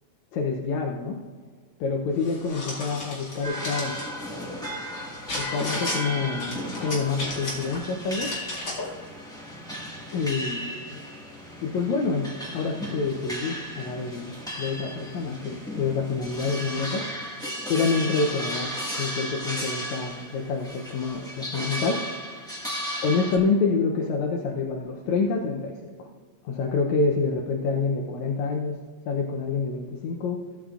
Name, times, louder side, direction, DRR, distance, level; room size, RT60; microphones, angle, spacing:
voice 1, 0.3-1.2 1.8-4.0 5.4-8.3 10.1-11.0 11.6-17.0 17.7-18.7 19.0-22.0 23.0-26.1 26.4-30.4, left 4 dB, 75° left, 1 dB, 2.0 m, -27 dB
sound 1, 2.2-4.1 5.3-6.0 6.4-7.8 8.1-8.9, left 2 dB, 40° left, 2.6 m, -35 dB
sound 2, 3.4-23.4, equal, 5° left, 0.6 m, -35 dB
16.5 x 8.1 x 2.5 m, 1.6 s
omnidirectional pair, 3.5 m